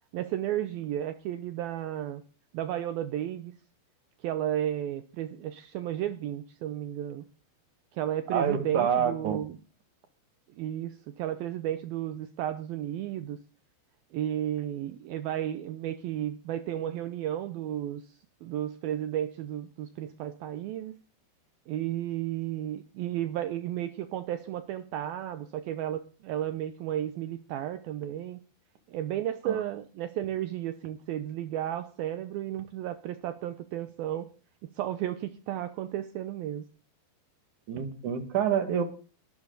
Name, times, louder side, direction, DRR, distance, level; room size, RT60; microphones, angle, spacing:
voice 1, 0.1-2.2 2.5-3.5 4.2-7.2 7.9-9.6 10.6-13.4 14.1-20.9 21.7-28.4 28.9-34.3 34.8-36.6, right 11 dB, 75° right, 11 dB, 2.2 m, -33 dB
voice 2, 8.3-9.4 29.4-29.6 37.7-38.8, right 8 dB, 50° right, 8 dB, 2.9 m, -27 dB
21.0 x 12.5 x 4.0 m, 0.37 s
omnidirectional pair, 5.1 m